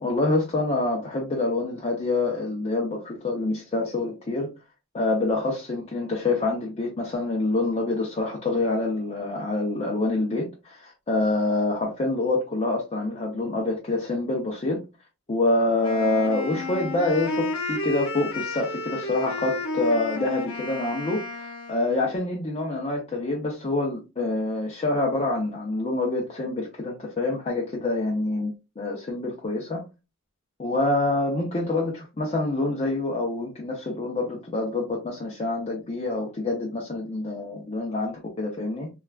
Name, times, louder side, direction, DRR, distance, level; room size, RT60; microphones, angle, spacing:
voice 1, 0.0-4.5 4.9-14.8 15.3-29.8 30.6-38.9, left 2 dB, 30° left, 0.5 m, -26 dB
Wind instrument woodwind instrument, 15.8-22.0, left 2 dB, 70° left, 0.7 m, -32 dB
3.3 x 2.3 x 2.3 m
head